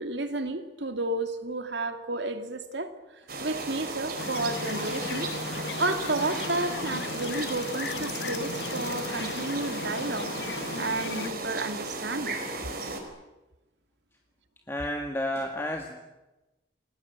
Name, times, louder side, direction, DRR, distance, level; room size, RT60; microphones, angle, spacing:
voice 1, 0.0-2.9 3.4-5.3 5.8-10.3 10.8-12.4, right 2 dB, 75° right, 7 dB, 2.5 m, -31 dB
sound 1, 3.3-13.0, right 3 dB, 55° right, 4.7 m, -35 dB
sound 2, 4.2-11.3, left 4 dB, 70° left, 1.1 m, -36 dB
voice 2, 14.7-16.0, left 1 dB, 15° left, 3 dB, 1.8 m, -31 dB
28.5 x 20.5 x 8.2 m, 1.1 s
head